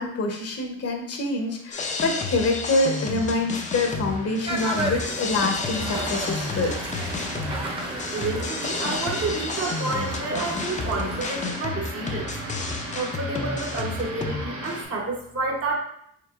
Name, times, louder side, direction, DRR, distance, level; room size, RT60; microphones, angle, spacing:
voice 1, 0.0-6.8, left 2 dB, 55° left, 3 dB, 0.8 m, -26 dB
sound 1, 1.3-14.8, right 2 dB, 80° right, 1.5 m, -38 dB
sound 2, 1.7-14.8, left 4 dB, 25° left, 0.4 m, -31 dB
sound 3, 4.5-11.4, right 1 dB, 15° right, 0.7 m, -34 dB
voice 2, 8.1-12.3 12.9-15.8, right 3 dB, 50° right, -1 dB, 1.0 m, -30 dB
4.7 x 3.1 x 2.4 m, 0.71 s
cardioid pair, 90°, 30 cm